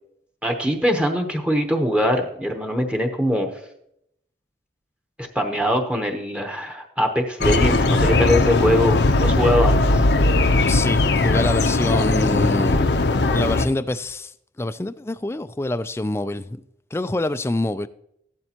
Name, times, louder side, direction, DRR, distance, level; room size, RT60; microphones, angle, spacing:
voice 1, 0.4-3.5 5.2-10.1, equal, 5° right, 0.9 m, -22 dB
sound 1, 7.4-13.7, left 2 dB, 70° left, 0.7 m, -19 dB
voice 2, 10.7-12.8 13.3-16.6 16.9-17.9, left 2 dB, 15° left, 0.3 m, -26 dB
15.0 x 12.0 x 2.9 m
head